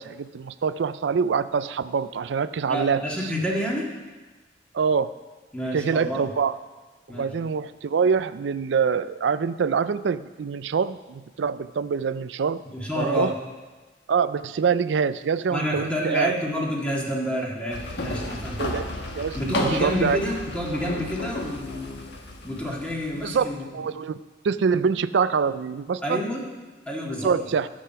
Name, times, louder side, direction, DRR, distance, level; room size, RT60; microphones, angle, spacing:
voice 1, 0.0-3.0 4.7-5.1 5.7-6.6 7.1-12.6 13.0-13.3 14.1-16.3 18.6-18.8 19.2-20.2 23.2-23.5 23.7-24.2 24.4-26.2 27.2-27.7, right 6 dB, 70° right, 14 dB, 0.4 m, -25 dB
voice 2, 2.7-3.9 5.5-6.3 7.1-7.3 12.7-13.3 15.5-18.6 19.3-22.1 22.4-23.6 26.0-26.4 26.9-27.3, equal, 5° left, -3 dB, 1.9 m, -28 dB
sound 1, 17.7-23.5, left 2 dB, 65° left, 1.3 m, -33 dB
12.0 x 7.7 x 5.6 m, 1.3 s
head